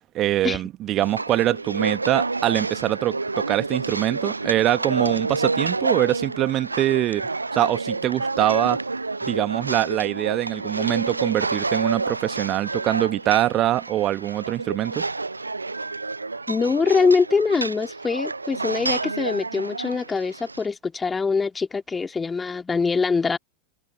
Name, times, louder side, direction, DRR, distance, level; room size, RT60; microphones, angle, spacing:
voice 1, 0.1-7.2 7.5-8.8 9.2-15.1, right 14 dB, 35° right, 1.5 m, -23 dB
sound 1, 1.0-20.7, right 3 dB, 80° right, 0.6 m, -29 dB
voice 2, 16.5-23.4, left 4 dB, 15° left, 2.4 m, -23 dB
figure-of-eight pair, 90°, 0 cm